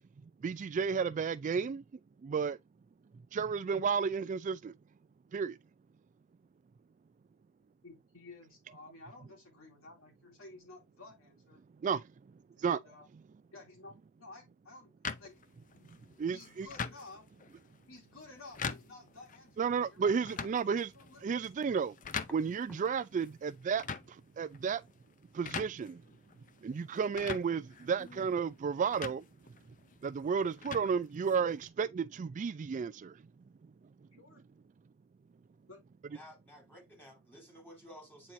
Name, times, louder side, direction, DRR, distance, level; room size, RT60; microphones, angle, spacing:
voice 1, 0.2-1.8 2.2-2.6 3.1-4.8 5.3-5.6 11.8-12.8 15.9-16.7 19.6-20.9 21.2-22.0 22.3-24.8 25.3-26.1 26.6-29.3 29.7-29.8 30.0-33.3 33.6-33.7 34.0-34.1, right 6 dB, 35° right, 0.3 m, -33 dB
voice 2, 7.8-11.6 12.6-13.1 13.5-15.4 16.3-17.3 17.9-21.2 34.1-34.4 35.7-35.8, left 3 dB, 70° left, 2.8 m, -53 dB
sound 1, 15.0-31.7, left 5 dB, 40° left, 0.6 m, -45 dB
voice 3, 36.1-38.3, equal, 10° left, 3.7 m, -53 dB
8.9 x 4.3 x 2.6 m
head